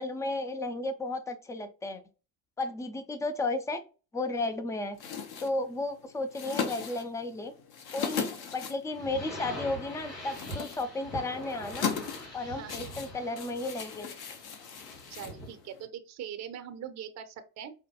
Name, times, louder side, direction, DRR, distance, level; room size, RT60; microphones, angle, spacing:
voice 1, 0.0-2.0 2.6-3.8 4.1-5.0 5.4-7.5 7.9-11.9 12.3-14.1, left 2 dB, 10° left, 9 dB, 0.3 m, -33 dB
sound 1, 4.9-15.9, left 6 dB, 50° left, 0.9 m, -39 dB
sound 2, 8.9-15.6, left 1 dB, 85° left, 1.7 m, -43 dB
voice 2, 12.4-12.9 15.1-17.7, right 9 dB, 35° right, 8 dB, 0.6 m, -42 dB
4.7 x 2.1 x 2.8 m, 0.33 s
hypercardioid pair, 65°, 49 cm